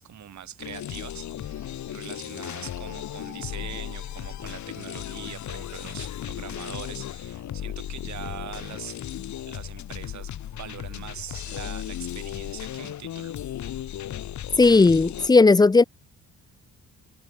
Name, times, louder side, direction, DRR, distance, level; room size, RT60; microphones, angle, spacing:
voice 1, 0.0-9.0 9.5-13.3, right 10 dB, 65° right, 7.9 m, -42 dB
sound 1, 0.6-15.3, left 11 dB, 70° left, 4.8 m, -36 dB
voice 2, 14.6-15.8, left 3 dB, 15° left, 0.5 m, -16 dB
cardioid pair, 90°, 30 cm